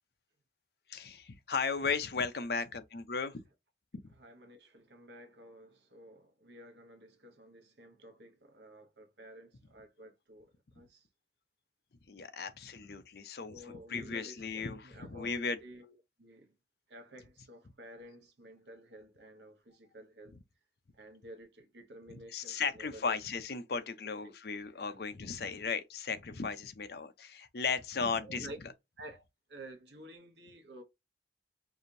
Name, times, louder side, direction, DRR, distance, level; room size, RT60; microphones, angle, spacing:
voice 1, 0.9-3.4 3.9-4.1 12.1-15.6 22.1-28.5, left 5 dB, 60° left, 0.6 m, -36 dB
voice 2, 4.1-11.1 13.5-16.6 16.9-20.4 20.9-23.1 24.2-24.3 24.9-25.0 28.0-28.6 29.0-29.2 29.5-30.8, right 1 dB, 70° right, 1.1 m, -52 dB
4.8 x 2.6 x 2.7 m
head